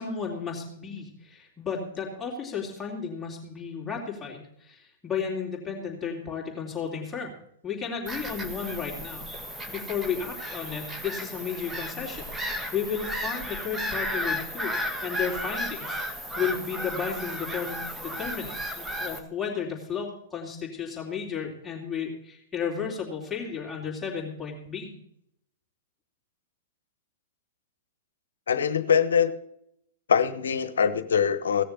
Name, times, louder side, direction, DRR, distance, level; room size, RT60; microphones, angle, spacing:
voice 1, 0.0-7.4 7.6-9.3 9.7-14.7 15.0-24.9, left 6 dB, 15° left, -3 dB, 3.4 m, -33 dB
Bird vocalization bird call bird song / Gull seagull, 8.1-19.2, equal, 10° right, 1.8 m, -34 dB
voice 2, 28.5-29.3 30.1-31.6, left 7 dB, 80° left, 12 dB, 1.2 m, -23 dB
17.0 x 6.8 x 6.8 m, 0.73 s
hypercardioid pair, 110°, 0 cm